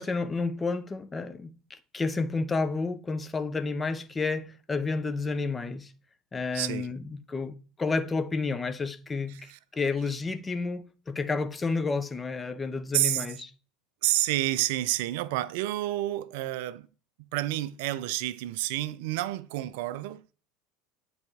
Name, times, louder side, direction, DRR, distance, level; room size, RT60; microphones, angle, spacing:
voice 1, 0.0-5.9 6.3-13.5, left 4 dB, 20° left, 0.8 m, -31 dB
voice 2, 6.5-6.9 9.3-9.6 12.9-13.3 14.0-16.9 17.3-20.3, right 16 dB, 60° right, 0.4 m, -29 dB
9.3 x 4.2 x 3.5 m
figure-of-eight pair, 75°, 0 cm